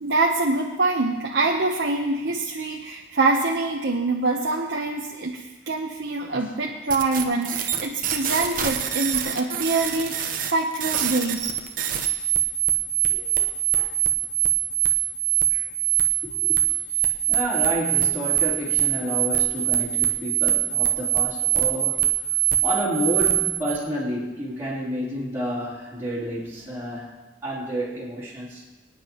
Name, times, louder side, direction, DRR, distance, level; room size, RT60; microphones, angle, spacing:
voice 1, 0.0-11.5 13.1-13.9 15.5-15.6, right 3 dB, 70° right, -1 dB, 1.0 m, -25 dB
sound 1, 6.9-23.8, right 11 dB, 45° right, 1.0 m, -23 dB
voice 2, 16.2-16.6 17.3-22.1 22.6-27.1 27.4-28.6, equal, 15° right, -10 dB, 3.9 m, -30 dB
24.5 x 9.9 x 3.1 m, 1.2 s
head